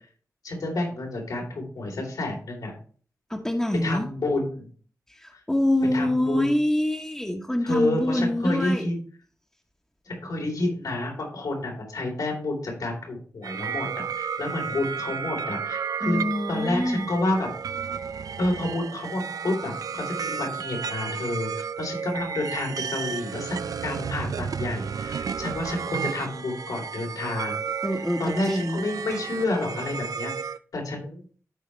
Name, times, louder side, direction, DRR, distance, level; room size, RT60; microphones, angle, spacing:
voice 1, 0.4-2.8 3.8-4.7 5.3-5.4 5.9-6.5 7.6-9.0 10.1-16.2 16.5-17.5 18.4-27.6 28.2-31.2, left 2 dB, 85° left, 0 dB, 3.7 m, -29 dB
voice 2, 3.3-4.1 5.2-8.9 16.0-17.1 27.8-28.8, left 1 dB, 10° left, -3 dB, 1.2 m, -25 dB
sound 1, 13.4-30.6, right 6 dB, 75° right, 0.4 m, -33 dB
14.0 x 5.0 x 3.2 m, 0.43 s
wide cardioid pair, 85°, 6 cm